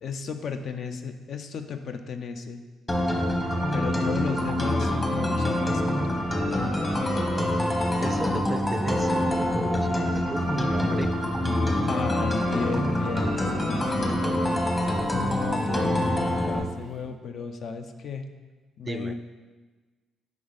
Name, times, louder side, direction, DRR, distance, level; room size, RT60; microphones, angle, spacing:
voice 1, 0.0-2.6 3.7-6.2 11.9-14.2 15.1-18.3 18.8-19.1, left 5 dB, 60° left, 7 dB, 0.6 m, -34 dB
sound 1, 2.9-16.6, left 1 dB, 20° left, 1.1 m, -25 dB
voice 2, 8.0-11.1 14.1-14.2 18.8-19.1, right 3 dB, 25° right, 10 dB, 0.3 m, -35 dB
sound 2, 10.3-17.1, left 1 dB, 90° left, 1.5 m, -45 dB
9.9 x 3.6 x 4.1 m, 1.3 s
cardioid pair, 90°, 0 cm